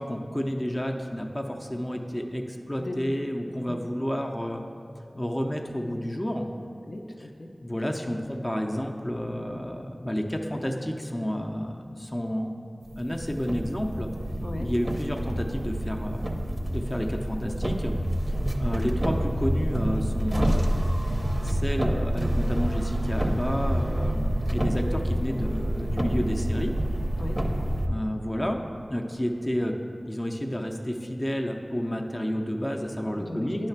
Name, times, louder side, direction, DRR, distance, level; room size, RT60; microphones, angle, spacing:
voice 1, 0.0-4.6 5.1-6.5 7.6-12.6 12.9-14.1 14.6-16.3 16.7-17.9 18.3-20.8 21.4-26.7 27.8-28.6 28.9-29.7 30.1-33.6, equal, 20° left, 2 dB, 0.5 m, -30 dB
voice 2, 6.8-7.5 14.4-14.7 27.2-27.7 33.1-33.7, left 1 dB, 75° left, 1 dB, 0.6 m, -37 dB
sound 1, 12.9-27.9, right 1 dB, 25° right, 0.6 m, -27 dB
9.5 x 3.2 x 5.8 m, 2.7 s
wide cardioid pair, 50°, 0 cm